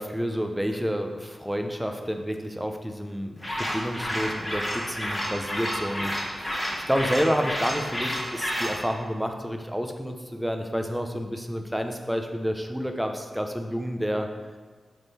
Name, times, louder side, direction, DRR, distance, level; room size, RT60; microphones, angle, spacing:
voice 1, 0.0-14.3, equal, 5° right, 4 dB, 0.6 m, -29 dB
sound 1, 3.4-8.8, equal, 15° left, 1.7 m, -30 dB
9.1 x 3.7 x 4.1 m, 1.4 s
wide cardioid pair, 115°, 0 cm